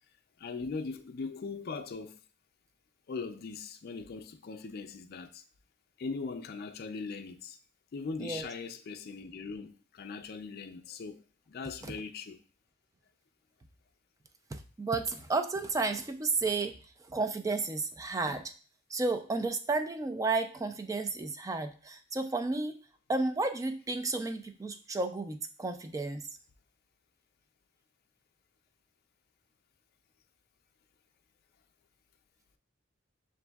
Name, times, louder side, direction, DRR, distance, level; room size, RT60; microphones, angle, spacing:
voice 1, 0.4-2.2 3.1-5.4 6.0-7.6 7.9-11.2 11.5-12.4, left 4 dB, 50° left, 0.4 m, -40 dB
voice 2, 14.5-16.7 17.1-18.4 18.9-22.8 23.1-26.2, right 3 dB, 15° right, 0.3 m, -32 dB
6.9 x 2.6 x 2.3 m
head